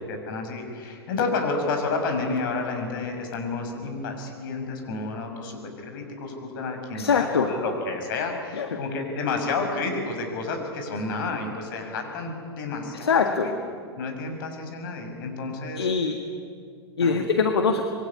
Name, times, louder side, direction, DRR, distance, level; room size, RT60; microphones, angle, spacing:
voice 1, 0.1-13.5 14.0-15.9 17.0-17.2, left 3 dB, 55° left, 4 dB, 6.3 m, -30 dB
voice 2, 6.9-7.5 8.6-8.8 13.0-13.5 15.8-16.2 17.0-17.8, left 5 dB, 70° left, 6 dB, 1.7 m, -23 dB
26.0 x 22.5 x 9.8 m, 2.3 s
figure-of-eight pair, 100°, 14 cm